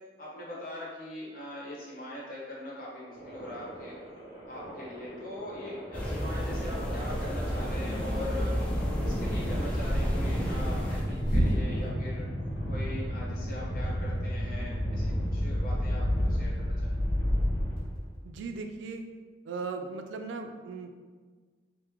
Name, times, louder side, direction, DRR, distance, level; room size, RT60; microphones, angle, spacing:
voice 1, 0.2-3.9 4.5-8.5 9.0-12.2 12.7-17.0, left 1 dB, 50° left, -6 dB, 0.9 m, -41 dB
sound 1, 3.1-18.2, equal, 30° right, 1.3 m, -33 dB
sound 2, 5.9-11.0, equal, 5° left, 0.3 m, -32 dB
sound 3, 6.4-11.9, equal, 30° left, 1.1 m, -33 dB
voice 2, 18.2-19.0 19.5-21.0, right 4 dB, 90° right, 5 dB, 0.3 m, -38 dB
3.0 x 2.0 x 3.5 m, 1.5 s
head